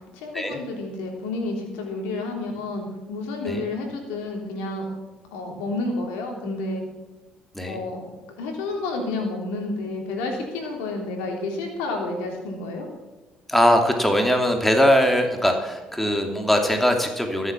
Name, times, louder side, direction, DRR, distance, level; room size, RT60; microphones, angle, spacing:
voice 1, 0.1-4.9 5.3-6.8 7.7-8.0 8.4-12.9, left 2 dB, 85° left, 2 dB, 3.3 m, -30 dB
voice 2, 13.5-17.5, equal, 5° left, 3 dB, 2.6 m, -21 dB
14.0 x 7.9 x 7.2 m, 1.1 s
supercardioid pair, 65°, 3 cm